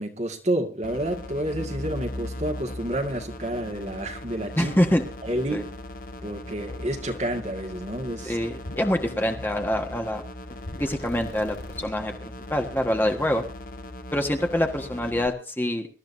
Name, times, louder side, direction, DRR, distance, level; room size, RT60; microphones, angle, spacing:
voice 1, 0.0-4.7 5.2-5.7 6.2-8.4, right 1 dB, 40° right, 2.0 m, -29 dB
sound 1, 0.8-15.3, left 1 dB, 50° left, 1.4 m, -40 dB
sound 2, 1.5-3.0 4.7-5.2 6.7-7.0 8.7-10.2 10.7-11.9, left 1 dB, 65° left, 1.8 m, -38 dB
voice 2, 4.6-5.0 5.5-5.6 8.2-10.2 10.8-13.4 14.1-15.9, left 1 dB, 10° left, 1.5 m, -25 dB
25.0 x 13.0 x 2.7 m
head